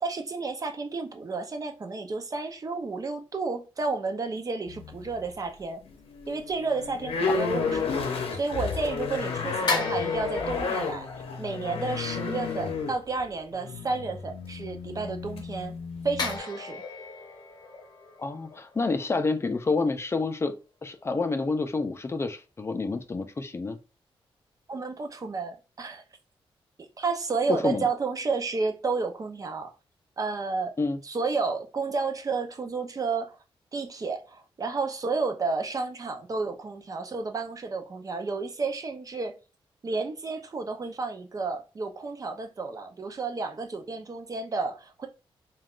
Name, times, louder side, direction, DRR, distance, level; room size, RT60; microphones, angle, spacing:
voice 1, 0.0-5.8 6.3-11.1 11.4-15.7 16.0-16.8 24.7-26.0 26.8-29.7 30.2-30.8 31.0-33.4 33.7-39.4 39.8-45.1, right 4 dB, 40° right, 0.5 m, -31 dB
sound 1, 4.7-5.4 5.8-16.4, left 5 dB, 85° left, 0.6 m, -32 dB
sound 2, 9.7-12.3 16.2-19.4 19.7-19.9, left 3 dB, 50° left, 0.8 m, -35 dB
voice 2, 18.2-20.5 20.8-23.8 27.5-27.8 30.8-31.0, left 3 dB, 30° left, 0.4 m, -28 dB
3.3 x 2.3 x 2.4 m
cardioid pair, 85°, 10 cm